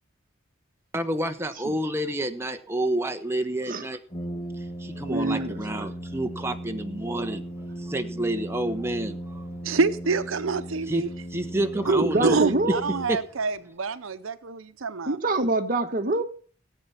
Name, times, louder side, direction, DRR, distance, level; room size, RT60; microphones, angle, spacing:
voice 1, 0.9-4.0 4.8-7.4 7.8-9.4 10.9-11.0 11.3-12.4 13.1-13.2, right 1 dB, 15° right, 1.1 m, -29 dB
Brass instrument, 4.1-13.6, right 1 dB, 25° left, 1.5 m, -37 dB
voice 2, 5.0-5.9 11.9-12.8 15.1-16.2, right 2 dB, 45° right, 1.4 m, -25 dB
voice 3, 9.6-11.1 12.2-15.2, right 4 dB, 85° right, 0.8 m, -26 dB
17.0 x 8.5 x 5.8 m
head